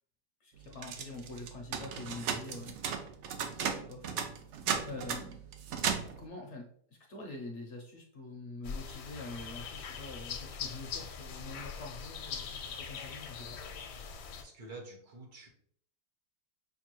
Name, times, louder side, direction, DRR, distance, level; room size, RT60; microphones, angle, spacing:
voice 1, 0.4-2.8 3.5-4.3 4.9-5.4 6.2-6.7 7.1-13.6, left 2 dB, 60° left, 1 dB, 0.8 m, -45 dB
sound 1, 0.7-6.2, right 7 dB, 90° right, 0.6 m, -35 dB
sound 2, 8.6-14.4, left 6 dB, 85° left, 1.2 m, -42 dB
voice 2, 14.4-15.5, right 2 dB, 65° right, 0 dB, 1.5 m, -48 dB
5.9 x 2.3 x 2.9 m, 0.63 s
omnidirectional pair, 1.8 m